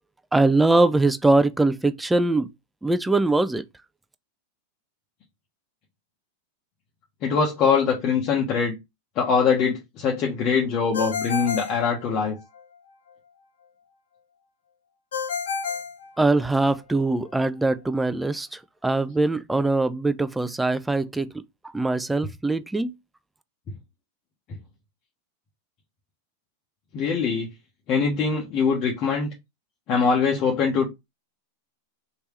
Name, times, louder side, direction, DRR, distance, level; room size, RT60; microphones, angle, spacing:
voice 1, 0.3-2.5 2.8-3.6 16.2-21.3 21.7-22.9, right 2 dB, 5° right, 0.4 m, -22 dB
voice 2, 7.2-8.8 9.2-12.4 26.9-27.5 27.9-29.3 29.9-30.9, left 5 dB, 45° left, 1.1 m, -22 dB
Ringtone, 10.9-12.6 15.1-16.8, left 6 dB, 85° left, 0.7 m, -31 dB
3.3 x 2.9 x 3.2 m
hypercardioid pair, 110°, 0 cm